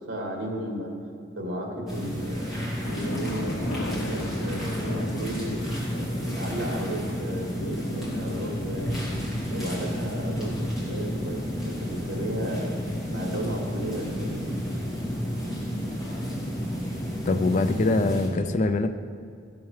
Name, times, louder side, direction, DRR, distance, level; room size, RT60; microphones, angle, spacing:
voice 1, 0.1-0.9 1.4-3.5 3.9-5.6 5.9-9.0 9.5-12.7 13.1-14.6, equal, 75° right, 0 dB, 2.1 m, -34 dB
sound 1, 1.9-18.3, equal, ahead, 2.4 m, -31 dB
sound 2, 2.8-17.9, left 1 dB, 70° left, 1.0 m, -39 dB
voice 2, 17.3-18.9, left 2 dB, 40° left, 8 dB, 0.4 m, -23 dB
13.0 x 7.1 x 4.8 m, 2.3 s
head